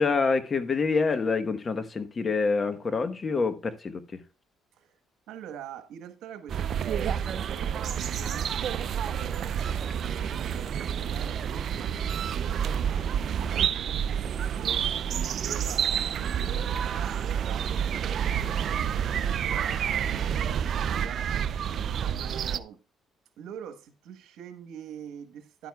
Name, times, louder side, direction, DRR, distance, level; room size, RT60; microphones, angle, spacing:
voice 1, 0.0-4.2, left 4 dB, 35° left, 1.1 m, -26 dB
voice 2, 5.3-11.9 12.2-14.0 14.5-21.3 21.7-22.8 23.4-25.7, right 9 dB, 80° right, 1.3 m, -45 dB
sound 1, 6.5-22.6, right 8 dB, 60° right, 0.5 m, -29 dB
11.0 x 9.0 x 2.3 m
cardioid pair, 90°, 0 cm